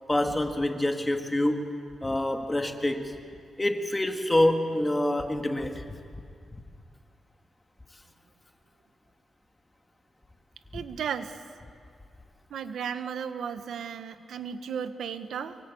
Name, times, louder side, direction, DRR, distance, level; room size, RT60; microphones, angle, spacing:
voice 1, 0.1-1.7 2.0-3.2 3.6-5.8, left 1 dB, 15° left, 5 dB, 2.1 m, -26 dB
voice 2, 10.7-11.4 12.5-15.6, right 7 dB, 85° right, 10 dB, 1.2 m, -34 dB
25.0 x 24.0 x 8.6 m, 2.2 s
cardioid pair, 110°, 0 cm